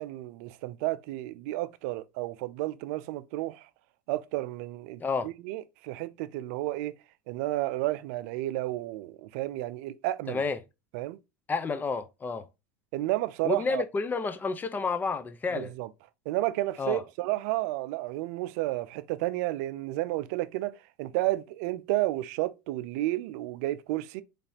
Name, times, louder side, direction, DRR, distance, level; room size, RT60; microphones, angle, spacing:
voice 1, 0.0-3.7 4.1-7.0 7.3-10.4 10.9-11.2 12.9-13.8 15.6-15.9 16.3-24.2, right 17 dB, 65° right, 0.4 m, -31 dB
voice 2, 10.3-10.6 11.5-12.5 13.4-15.7 16.8-17.0, left 4 dB, 20° left, 0.6 m, -30 dB
4.0 x 3.3 x 2.7 m
hypercardioid pair, 105°, 9 cm